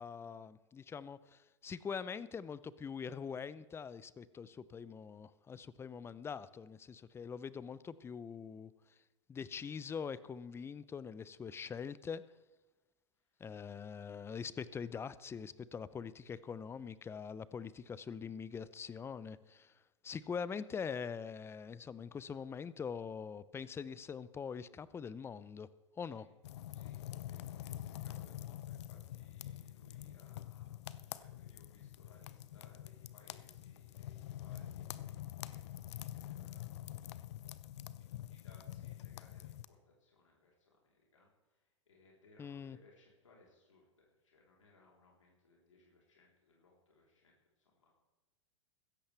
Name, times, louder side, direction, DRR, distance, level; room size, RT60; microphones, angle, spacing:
voice 1, 0.0-8.7 9.3-12.2 13.4-19.8 20.0-25.7 26.0-26.3 42.4-42.8, left 6 dB, 15° left, 17 dB, 0.6 m, -43 dB
sound 1, 26.4-39.7, left 13 dB, 65° left, 0.6 m, -46 dB
voice 2, 27.2-30.8 31.0-37.0 38.0-41.3 41.6-47.9, left 2 dB, 90° left, -3 dB, 3.8 m, -66 dB
16.0 x 14.0 x 3.4 m, 1.1 s
hypercardioid pair, 105°, 16 cm